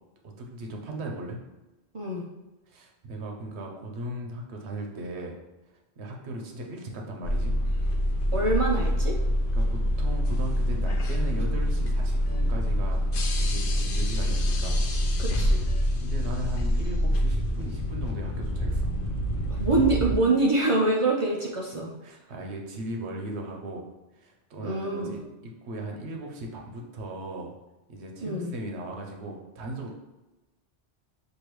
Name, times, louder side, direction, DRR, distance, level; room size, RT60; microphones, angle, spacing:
voice 1, 0.2-1.4 2.7-5.4 6.0-7.6 8.3-8.4 9.5-13.0 13.4-14.8 15.4-15.6 16.0-18.9 22.0-23.9 24.1-27.5 27.9-29.9, right 1 dB, 85° right, 1 dB, 1.0 m, -37 dB
sound 1, 7.2-20.2, equal, 60° left, 0.7 m, -26 dB
voice 2, 8.3-9.2 15.2-15.6 19.5-21.9 24.6-25.1 28.2-28.5, right 2 dB, 40° right, -2 dB, 0.5 m, -25 dB
6.4 x 2.7 x 3.1 m, 1.1 s
omnidirectional pair, 1.1 m